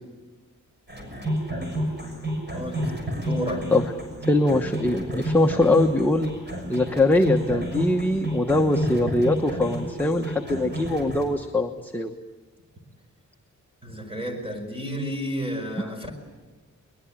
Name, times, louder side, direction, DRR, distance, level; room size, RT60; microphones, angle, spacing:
sound 1, 0.9-11.2, equal, 35° right, 6.4 m, -30 dB
voice 1, 2.5-2.9 3.2-3.7 13.8-16.1, equal, 15° right, 5 dB, 5.3 m, -31 dB
voice 2, 4.3-6.3 6.7-12.1, left 2 dB, 5° left, 3 dB, 1.1 m, -22 dB
22.5 x 21.5 x 9.0 m, 1.3 s
wide cardioid pair, 115°, 32 cm